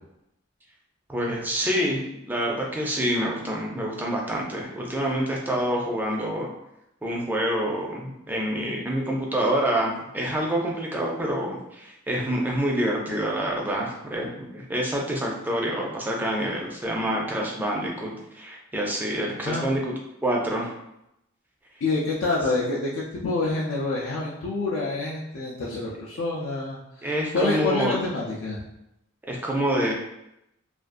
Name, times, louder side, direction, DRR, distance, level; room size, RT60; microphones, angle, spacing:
voice 1, 1.1-2.0 2.3-6.5 7.0-19.9 20.2-20.7 27.0-28.0 29.3-29.9, right 1 dB, 10° right, -2 dB, 0.4 m, -27 dB
voice 2, 21.8-27.1 27.3-28.6, left 3 dB, 85° left, -5 dB, 0.4 m, -27 dB
2.5 x 2.3 x 2.4 m, 0.84 s
head